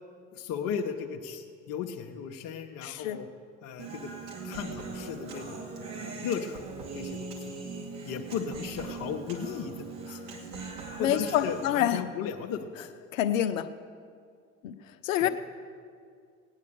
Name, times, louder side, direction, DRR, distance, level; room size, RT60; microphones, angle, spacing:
voice 1, 0.3-3.3 3.6-4.1 4.4-6.6 6.9-7.5 8.1-10.2 11.0-12.9 15.2-15.3, left 7 dB, 55° left, 3 dB, 1.1 m, -36 dB
voice 2, 2.8-3.2 11.0-12.0 13.1-13.7 14.6-14.7 15.0-15.3, left 11 dB, 75° left, 11 dB, 0.7 m, -27 dB
Human voice, 3.8-11.8, right 4 dB, 65° right, 2.4 m, -40 dB
17.5 x 9.5 x 6.9 m, 2.2 s
figure-of-eight pair, 60°, 40 cm